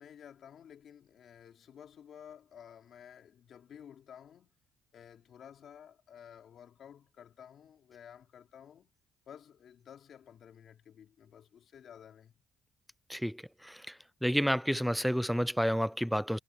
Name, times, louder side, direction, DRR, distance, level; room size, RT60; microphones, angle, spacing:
voice 1, 0.0-4.5 4.9-8.9 9.3-12.3, left 8 dB, 65° left, 4.0 m, -53 dB
voice 2, 13.1-13.8 14.2-16.4, equal, ahead, 0.4 m, -30 dB
cardioid pair, 90°, 0 cm